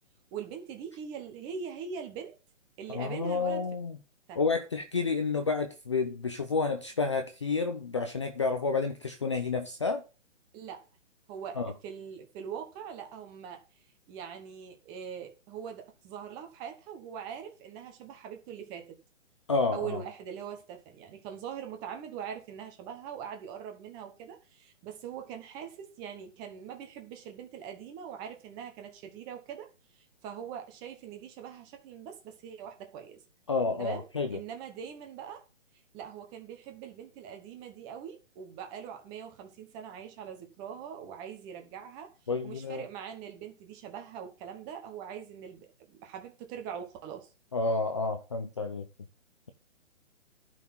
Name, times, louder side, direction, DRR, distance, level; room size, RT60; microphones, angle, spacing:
voice 1, 0.3-2.4 2.8-3.6 4.3-4.4 10.5-10.9 11.3-13.6 14.1-19.0 19.7-29.7 30.0-33.2 33.8-35.4 35.9-42.1 42.4-47.3, right 8 dB, 10° right, 1.0 m, -42 dB
voice 2, 2.9-4.0 4.3-10.0 11.6-11.7 19.5-20.0 33.5-34.4 42.3-42.8 47.5-48.9, left 4 dB, 25° left, 0.5 m, -30 dB
11.5 x 6.0 x 5.6 m
hypercardioid pair, 165°, 37 cm